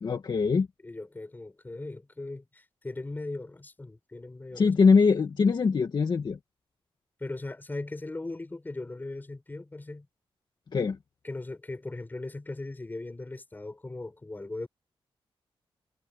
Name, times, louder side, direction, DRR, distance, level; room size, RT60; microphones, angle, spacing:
voice 1, 0.0-0.7 4.5-6.4 10.7-11.0, left 5 dB, 50° left, 1.9 m, -22 dB
voice 2, 0.8-4.7 7.2-10.1 11.2-14.7, left 2 dB, 20° left, 6.4 m, -38 dB
wide cardioid pair, 145°, 10 cm